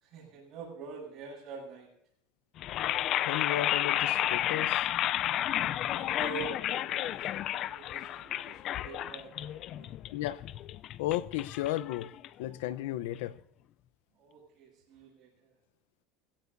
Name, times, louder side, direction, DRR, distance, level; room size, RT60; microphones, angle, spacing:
voice 1, 0.0-1.9 5.9-9.9 14.2-15.5, right 5 dB, 40° right, 7.8 m, -46 dB
sound 1, 2.6-12.6, left 12 dB, 45° left, 0.4 m, -32 dB
voice 2, 3.2-4.8 10.1-10.4 11.0-12.1 12.4-13.4, left 14 dB, 85° left, 0.7 m, -34 dB
20.0 x 16.5 x 2.7 m
supercardioid pair, 140°, 0 cm